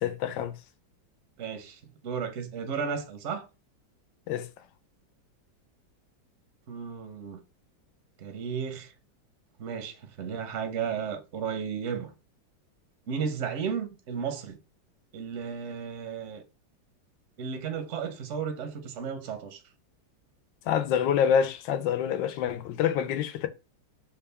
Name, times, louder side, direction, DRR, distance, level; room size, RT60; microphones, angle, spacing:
voice 1, 0.0-0.5 4.3-4.5 20.7-23.5, left 8 dB, 80° left, 1.3 m, -26 dB
voice 2, 1.4-3.5 6.7-7.4 8.2-8.9 9.6-12.1 13.1-14.6 15.1-16.4 17.4-19.6, right 6 dB, 55° right, 0.8 m, -34 dB
6.4 x 2.3 x 3.3 m
omnidirectional pair, 2.1 m